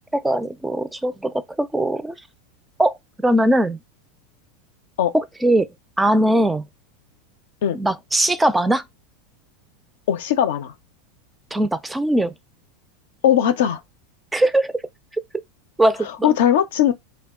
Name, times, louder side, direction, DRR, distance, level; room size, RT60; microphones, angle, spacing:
voice 1, 0.1-2.2 2.8-2.9 3.2-3.8 5.1-5.7 6.0-6.7 7.7-8.8 11.5-12.3 14.3-14.7 15.8-16.3, right 1 dB, 10° right, 0.3 m, -20 dB
voice 2, 10.1-10.7 13.2-13.8 16.2-16.9, left 10 dB, 70° left, 0.4 m, -18 dB
2.2 x 2.1 x 3.6 m
hypercardioid pair, 95°, 0 cm